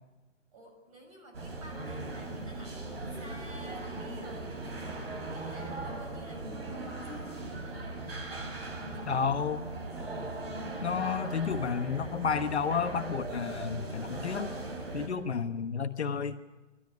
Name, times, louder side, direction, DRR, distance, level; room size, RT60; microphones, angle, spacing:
voice 1, 0.5-7.9 8.9-9.1, equal, 25° right, 1 dB, 6.1 m, -52 dB
sound 1, 1.3-15.1, right 2 dB, 50° right, 4.7 m, -39 dB
voice 2, 9.0-9.7 10.8-14.5 14.9-16.4, left 6 dB, 60° left, 8 dB, 1.3 m, -31 dB
28.0 x 13.0 x 9.6 m, 1.2 s
hypercardioid pair, 175°, 38 cm